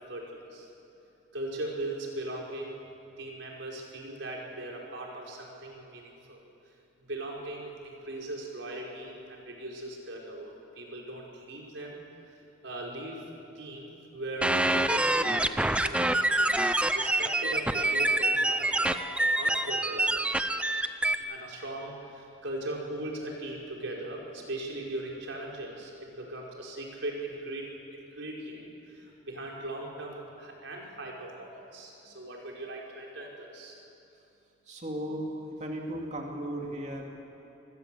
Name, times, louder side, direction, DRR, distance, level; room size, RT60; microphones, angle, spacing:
voice 1, 0.1-0.7 1.3-2.8 3.2-6.4 7.1-12.0 12.6-13.2 13.5-15.4 15.8-16.2 16.9-19.1 19.4-20.3 21.2-33.8, right 1 dB, 80° right, -1 dB, 5.0 m, -39 dB
sound 1, 14.4-21.1, right 1 dB, 5° right, 0.6 m, -26 dB
voice 2, 34.7-37.1, right 1 dB, 35° right, 0 dB, 3.0 m, -36 dB
27.5 x 20.5 x 7.8 m, 2.8 s
head